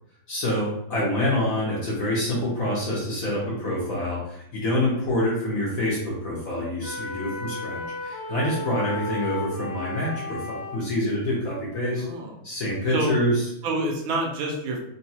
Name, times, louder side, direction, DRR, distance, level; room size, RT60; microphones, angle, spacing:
voice 1, 0.3-12.0 12.4-13.5, left 1 dB, 60° left, -5 dB, 0.9 m, -26 dB
sound 1, 6.8-10.8, left 2 dB, 30° left, 1.0 m, -33 dB
voice 2, 12.0-12.3 12.9-13.2 13.6-14.8, right 2 dB, 75° right, -1 dB, 1.5 m, -27 dB
3.9 x 2.3 x 2.7 m, 0.74 s
omnidirectional pair, 2.4 m